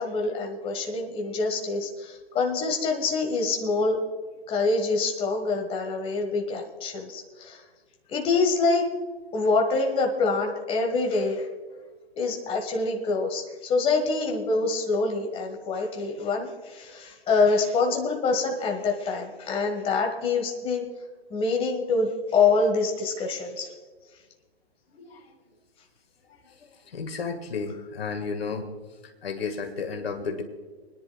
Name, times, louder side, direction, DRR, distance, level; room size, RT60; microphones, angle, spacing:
voice 1, 0.0-4.0 4.5-7.6 8.1-8.9 9.3-11.5 12.2-20.8 21.3-23.7, left 3 dB, 15° left, 2 dB, 1.5 m, -25 dB
voice 2, 24.9-25.3 26.4-26.5 26.9-28.7 29.2-30.4, left 5 dB, 65° left, 5 dB, 1.8 m, -33 dB
29.0 x 10.5 x 2.3 m, 1.4 s
figure-of-eight pair, 125°, 32 cm